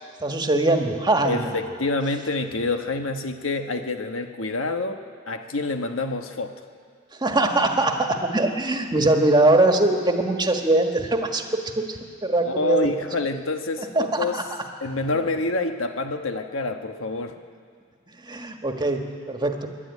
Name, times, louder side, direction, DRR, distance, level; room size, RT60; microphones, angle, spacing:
voice 1, 0.2-1.5 7.2-11.5 11.8-12.9 13.9-14.4 18.2-19.7, right 2 dB, 20° right, 4 dB, 1.6 m, -22 dB
voice 2, 1.2-6.5 12.4-14.4 14.8-17.3, left 3 dB, 90° left, 6 dB, 1.3 m, -27 dB
25.0 x 11.5 x 9.8 m, 2.1 s
head